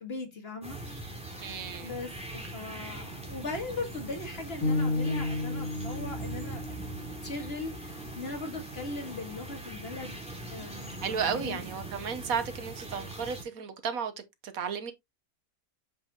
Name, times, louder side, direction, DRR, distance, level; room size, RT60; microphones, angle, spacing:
voice 1, 0.0-1.2 1.8-6.8 7.2-10.2 10.5-11.7, left 3 dB, 45° left, 2.0 m, -39 dB
sound 1, 0.6-13.4, right 2 dB, 5° right, 2.5 m, -41 dB
voice 2, 1.4-1.9 11.0-14.1 14.4-14.9, right 7 dB, 80° right, 1.4 m, -33 dB
sound 2, 4.6-8.7, left 2 dB, 85° left, 3.2 m, -33 dB
7.4 x 5.8 x 2.8 m
omnidirectional pair, 1.5 m